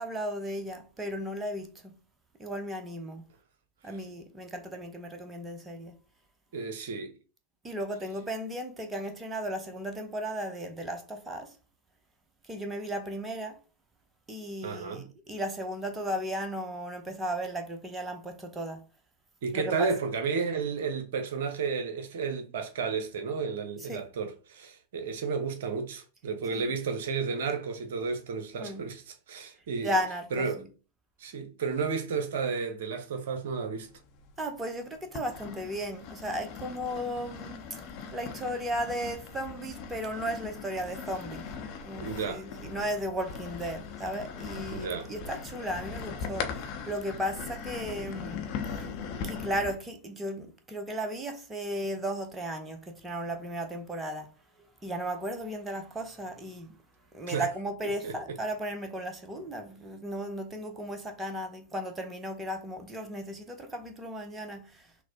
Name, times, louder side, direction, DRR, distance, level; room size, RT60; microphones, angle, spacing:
voice 1, 0.0-2.0 2.4-3.2 3.8-5.9 7.6-11.5 12.5-13.6 14.3-18.8 19.5-19.9 23.9-24.0 26.5-26.7 28.6-28.9 29.8-30.3 34.4-37.8 38.1-41.5 41.9-48.9 49.2-54.3 54.6-56.7 57.1-64.9, equal, 15° right, 0.7 m, -35 dB
voice 2, 6.5-7.1 14.6-15.1 19.4-30.0 30.3-30.6 31.2-33.9 42.0-42.5 44.7-45.1 57.3-57.5 58.0-58.4, right 5 dB, 55° right, 0.6 m, -32 dB
sound 1, 33.9-34.6 35.1-49.8, left 6 dB, 40° left, 0.7 m, -40 dB
6.0 x 2.1 x 2.8 m
figure-of-eight pair, 90°, 0 cm